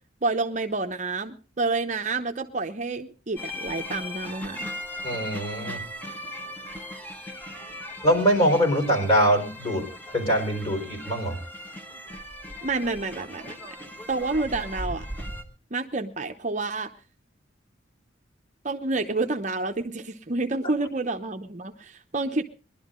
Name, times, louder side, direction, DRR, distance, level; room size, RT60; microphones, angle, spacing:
voice 1, 0.2-4.7 12.6-13.6 14.1-15.1 15.7-16.9 18.6-22.4, right 3 dB, 40° right, 5 dB, 0.8 m, -29 dB
sound 1, 3.4-15.4, left 1 dB, 10° left, 1.3 m, -38 dB
voice 2, 5.0-5.8 8.0-9.9 10.1-11.4, equal, 30° left, 3 dB, 4.3 m, -23 dB
21.0 x 12.0 x 3.8 m, 0.36 s
head